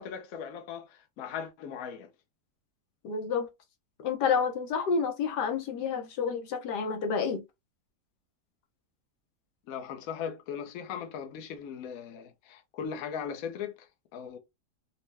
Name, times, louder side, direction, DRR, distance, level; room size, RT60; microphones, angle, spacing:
voice 1, 0.0-2.1 9.7-14.4, left 7 dB, 65° left, 1.1 m, -39 dB
voice 2, 3.0-3.5 4.0-7.4, left 6 dB, 85° left, 1.4 m, -29 dB
4.4 x 2.1 x 3.3 m
omnidirectional pair, 1.8 m